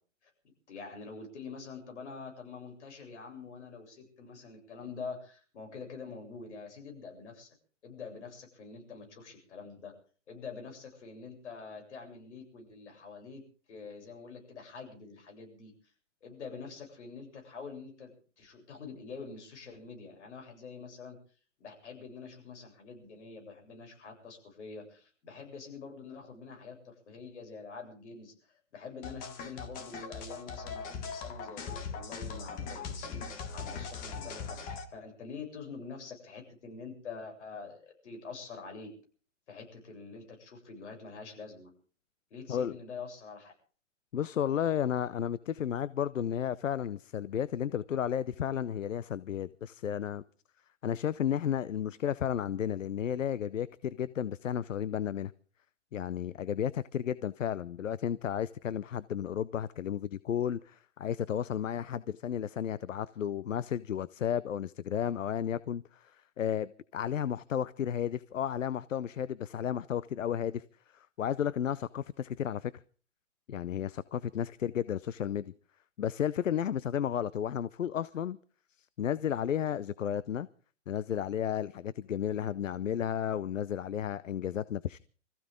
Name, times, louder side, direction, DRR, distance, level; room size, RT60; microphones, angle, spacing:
voice 1, 0.7-7.5 7.8-9.9 10.3-13.4 13.7-15.7 16.2-21.2 21.6-28.3 28.7-38.9 39.5-41.7 42.3-43.5, left 5 dB, 65° left, 7.8 m, -46 dB
sound 1, 29.0-34.8, left 5 dB, 20° left, 1.7 m, -40 dB
voice 2, 44.1-50.2 50.8-55.3 55.9-70.6 70.9-72.7 73.5-75.5 76.0-78.4 79.0-80.5 80.9-85.0, left 9 dB, 85° left, 0.7 m, -33 dB
25.0 x 15.0 x 3.7 m
hypercardioid pair, 140°, 37 cm